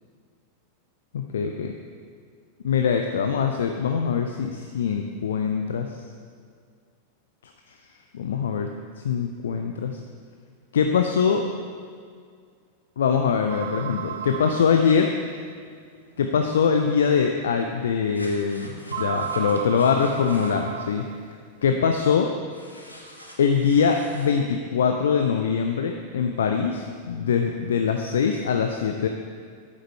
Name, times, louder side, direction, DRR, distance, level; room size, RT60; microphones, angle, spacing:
voice 1, 1.1-1.8 2.6-5.9 8.1-8.7 9.0-10.0 10.7-11.5 13.0-15.1 16.2-21.1 21.6-22.3 23.4-29.1, left 6 dB, 65° left, 4 dB, 0.5 m, -23 dB
sound 1, 13.5-15.5 16.2-16.3 16.9-17.0 18.9-21.3, right 8 dB, 60° right, 0.3 m, -34 dB
sound 2, 18.1-20.7 22.5-24.3, left 1 dB, 85° left, 0.9 m, -45 dB
10.0 x 8.9 x 3.3 m, 2.1 s
figure-of-eight pair, 90°, 0 cm